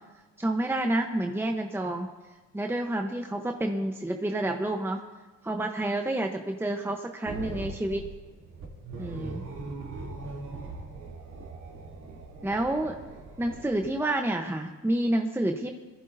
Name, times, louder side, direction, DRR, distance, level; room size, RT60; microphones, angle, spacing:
voice 1, 0.4-2.1 2.5-5.0 5.4-8.0 9.0-9.5 12.4-13.0 13.4-15.7, right 1 dB, 10° right, 3 dB, 0.9 m, -29 dB
sound 1, 7.3-14.0, right 3 dB, 70° right, 2.9 m, -40 dB
22.5 x 14.5 x 2.7 m, 1.2 s
cardioid pair, 90°, 30 cm